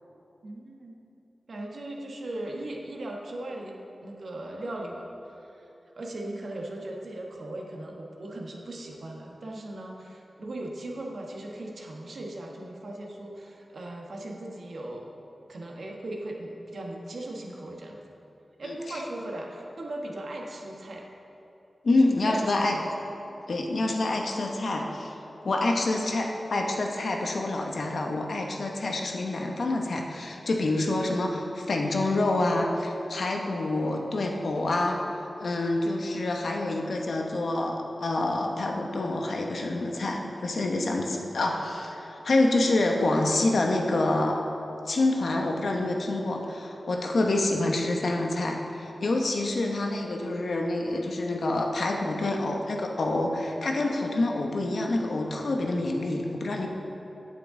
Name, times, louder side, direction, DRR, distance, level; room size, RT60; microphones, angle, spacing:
voice 1, 0.4-1.0 1.5-3.8 4.0-5.7 6.0-15.1 15.5-18.0 18.6-21.1 21.9-22.9, right 1 dB, 70° right, 0 dB, 1.1 m, -38 dB
voice 2, 18.6-19.0 21.8-22.8 23.5-25.1 25.4-35.0 35.4-44.4 44.9-56.7, left 2 dB, 70° left, 1 dB, 0.9 m, -27 dB
8.4 x 8.4 x 3.7 m, 3.0 s
wide cardioid pair, 95°, 0 cm